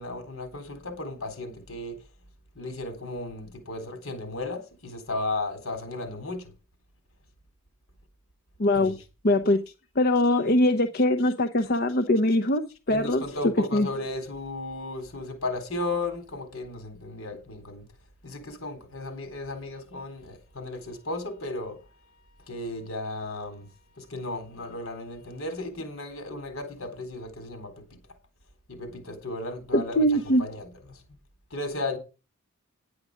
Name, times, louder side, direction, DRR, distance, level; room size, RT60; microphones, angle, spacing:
voice 1, 0.0-1.9 2.6-6.4 8.8-8.9 12.9-17.8 18.2-21.8 22.5-23.7 24.1-27.7 28.7-30.1 30.4-30.7 31.5-32.0, left 2 dB, 75° left, 3.8 m, -34 dB
voice 2, 8.6-9.0 9.2-9.6 10.0-13.2 13.7-13.9 29.7-30.4, left 1 dB, 50° left, 0.8 m, -22 dB
10.5 x 9.6 x 5.0 m
head